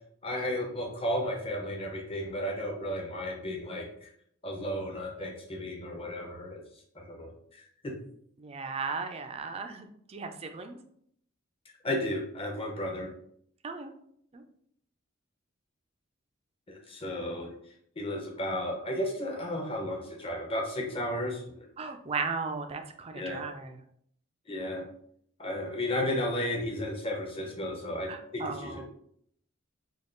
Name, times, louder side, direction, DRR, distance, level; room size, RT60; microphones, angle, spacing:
voice 1, 0.2-4.1 4.4-6.6 7.0-7.3 7.8-7.9 11.8-13.1 16.7-17.5 18.0-21.4 23.1-23.4 24.5-24.8 25.4-28.8, left 1 dB, 25° left, 0 dB, 0.8 m, -33 dB
voice 2, 8.4-10.8 13.6-13.9 14.3-14.4 21.8-23.8 28.1-28.8, right 4 dB, 30° right, 6 dB, 0.3 m, -36 dB
3.4 x 2.3 x 3.8 m, 0.67 s
head